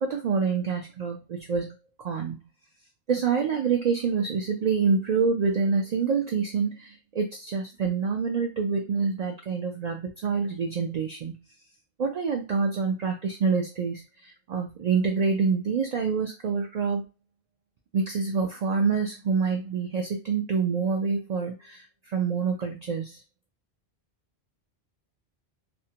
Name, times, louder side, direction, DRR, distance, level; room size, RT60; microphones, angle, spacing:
voice 1, 0.0-2.4 3.1-11.4 12.0-14.0 14.5-17.0 17.9-21.8 22.1-23.2, right 5 dB, 55° right, 1 dB, 0.5 m, -26 dB
2.6 x 2.1 x 2.8 m, 0.27 s
omnidirectional pair, 1.1 m